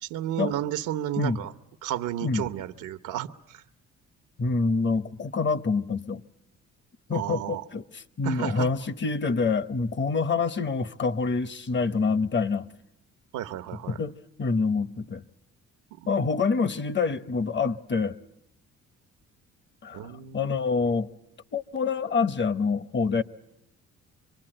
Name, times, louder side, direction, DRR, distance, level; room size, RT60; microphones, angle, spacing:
voice 1, 0.0-1.5 1.8-3.6 7.1-7.6 8.2-8.7 13.3-14.0 15.9-16.1 19.9-20.6, right 12 dB, 90° right, 1.0 m, -32 dB
voice 2, 4.4-6.2 7.1-12.7 13.9-15.2 16.1-18.2 19.8-21.1 21.5-23.2, left 4 dB, 40° left, 1.0 m, -26 dB
25.5 x 24.0 x 8.9 m
cardioid pair, 90°, 30 cm